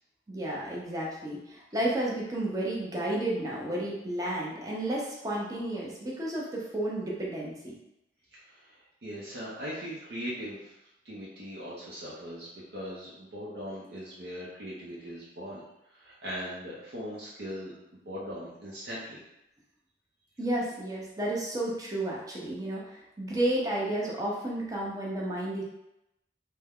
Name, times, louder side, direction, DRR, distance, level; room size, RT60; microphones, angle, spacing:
voice 1, 0.3-7.7 20.4-25.6, right 1 dB, 20° right, -4 dB, 0.7 m, -32 dB
voice 2, 8.3-10.7 11.0-15.6 15.9-19.2, equal, 60° right, -7 dB, 0.7 m, -40 dB
3.4 x 2.1 x 3.5 m, 0.87 s
head